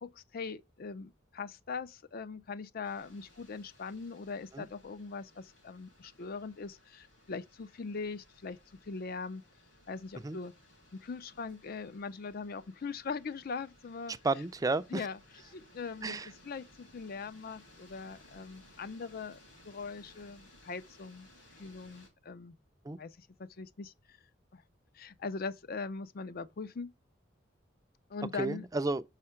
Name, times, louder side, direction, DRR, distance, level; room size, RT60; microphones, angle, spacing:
voice 1, 0.0-8.6 8.8-9.4 9.9-10.5 10.9-14.1 14.9-19.4 19.6-21.3 21.6-22.6 23.0-23.9 24.5-24.6 24.9-26.9 28.1-28.7, left 4 dB, 50° left, 0.5 m, -41 dB
sound 1, 2.8-22.1, left 1 dB, 75° left, 3.1 m, -61 dB
voice 2, 14.2-15.0 16.0-16.3 22.9-23.0 28.4-29.0, right 3 dB, 20° right, 0.4 m, -31 dB
6.4 x 4.9 x 4.3 m
head